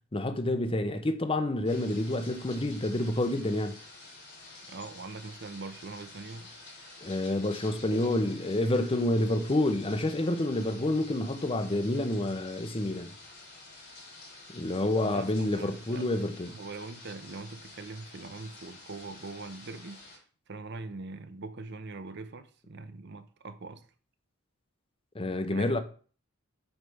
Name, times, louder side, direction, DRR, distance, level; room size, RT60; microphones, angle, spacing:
voice 1, 0.1-3.7 7.0-13.1 14.5-16.6 25.1-25.8, left 1 dB, 25° left, 0.7 m, -28 dB
sound 1, 1.6-20.2, left 2 dB, 50° left, 4.0 m, -49 dB
voice 2, 4.7-6.5 15.0-16.1 16.5-20.0 20.5-23.8 25.4-25.8, right 3 dB, 55° right, 0.7 m, -42 dB
8.0 x 3.3 x 5.5 m
head